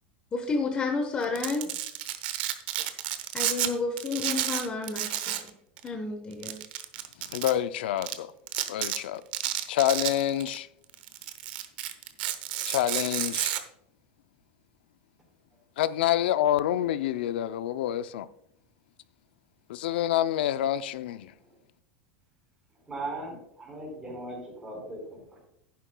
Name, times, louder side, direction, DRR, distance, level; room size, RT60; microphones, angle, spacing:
voice 1, 0.3-1.6 3.3-5.3 5.8-6.6, left 3 dB, 20° left, 1.1 m, -30 dB
Domestic sounds home sounds, 1.2-3.7 4.0-5.5 5.8-5.9 6.4-7.5 8.0-8.1 8.5-9.0 9.3-10.6 10.9-13.6, right 13 dB, 65° right, 0.9 m, -31 dB
voice 2, 7.3-8.3 8.7-9.2 9.7-10.7 12.6-13.6 15.8-18.3 19.7-21.3, left 12 dB, 85° left, 0.5 m, -27 dB
voice 3, 22.8-25.4, right 2 dB, 15° right, 4.2 m, -39 dB
11.0 x 10.0 x 2.3 m
supercardioid pair, 155°, 5 cm